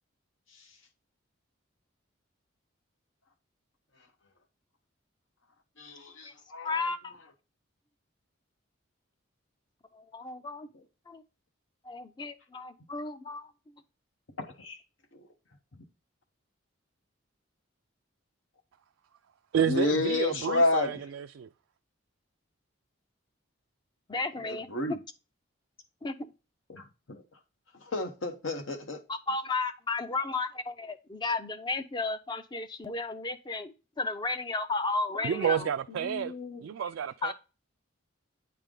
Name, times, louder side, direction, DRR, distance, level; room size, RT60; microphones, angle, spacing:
voice 1, 5.8-6.8 14.4-14.8 19.6-21.0 24.4-25.0 26.7-27.2 27.8-29.0 35.1-35.5 35.9-36.6, left 2 dB, 75° left, 0.9 m, -31 dB
voice 2, 6.6-7.1 9.9-10.7 11.1-11.2 11.8-13.5 24.1-25.0 26.0-26.3 29.1-35.7 37.2-37.3, left 3 dB, 20° left, 0.4 m, -33 dB
voice 3, 19.5-21.5 35.2-36.3 36.6-37.3, right 8 dB, 75° right, 0.3 m, -30 dB
8.9 x 3.4 x 3.7 m
head